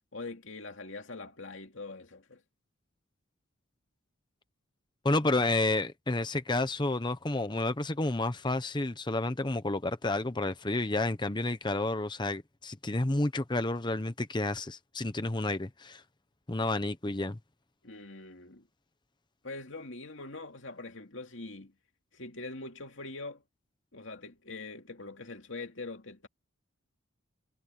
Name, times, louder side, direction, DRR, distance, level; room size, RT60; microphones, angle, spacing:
voice 1, 0.1-2.4 17.8-18.7 19.4-21.7 22.1-23.4 23.9-26.3, left 3 dB, 60° left, 2.7 m, -43 dB
voice 2, 5.0-16.0 16.5-17.4, left 2 dB, 20° left, 0.9 m, -30 dB
head